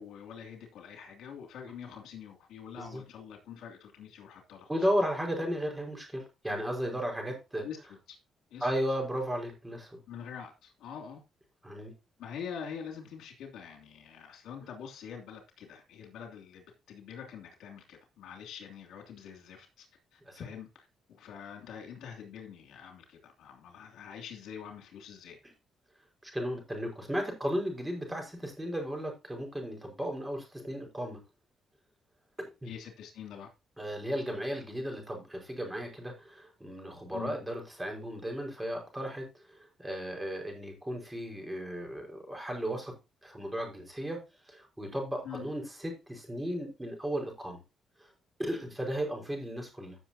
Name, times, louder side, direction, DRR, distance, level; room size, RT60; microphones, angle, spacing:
voice 1, 0.0-4.9 7.6-7.8 8.1-8.2 8.5-8.7 10.1-11.2 12.2-19.9 20.1-25.4 32.6-33.5 37.1-37.4 45.2-45.4, left 7 dB, 80° left, 3.0 m, -45 dB
voice 2, 4.7-7.7 8.6-10.0 11.6-11.9 20.3-20.4 26.2-31.2 32.4-32.7 33.8-39.3 39.8-42.9 43.2-44.2 44.5-47.6 48.4-50.0, equal, 10° right, 5.2 m, -35 dB
15.0 x 6.9 x 2.9 m
cardioid pair, 90°, 0 cm